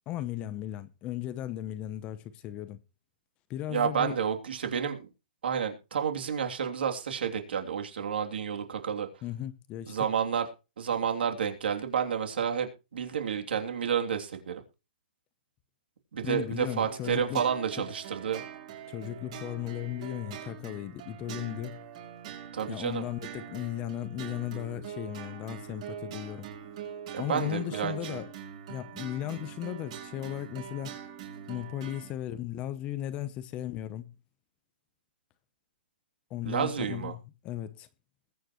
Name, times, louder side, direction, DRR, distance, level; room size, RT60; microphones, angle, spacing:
voice 1, 0.1-2.8 3.5-4.1 9.2-10.0 16.2-17.4 18.9-21.8 22.7-26.5 27.2-28.3 28.7-31.0 31.5-34.1 36.3-37.2 37.4-37.9, left 13 dB, 20° left, 0.8 m, -36 dB
voice 2, 3.7-5.1 5.4-9.1 9.9-10.5 10.8-14.6 16.1-18.4 22.5-23.0 27.1-28.2 36.4-37.1, right 7 dB, 75° right, 3.0 m, -30 dB
sound 1, 16.7-32.1, right 9 dB, 40° right, 5.8 m, -43 dB
21.0 x 9.3 x 3.1 m
hypercardioid pair, 165°, 6 cm